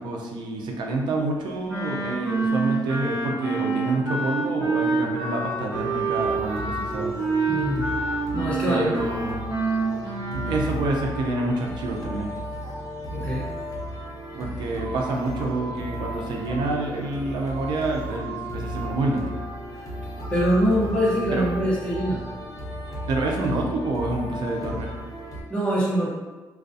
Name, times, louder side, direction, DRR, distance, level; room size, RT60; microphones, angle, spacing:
voice 1, 0.0-7.1 8.7-9.5 10.0-12.3 14.3-19.2 21.3-21.5 23.0-24.9, right 2 dB, 70° right, 0 dB, 0.5 m, -28 dB
Wind instrument woodwind instrument, 1.7-10.7, right 3 dB, 35° right, 0.8 m, -27 dB
sound 1, 5.7-25.4, equal, 50° left, 0.7 m, -34 dB
voice 2, 7.5-7.9 8.3-9.1 13.1-13.5 19.7-19.9 20.3-22.2 25.5-26.1, equal, 15° left, -6 dB, 0.8 m, -24 dB
2.4 x 2.2 x 2.6 m, 1.3 s
cardioid pair, 125°, 8 cm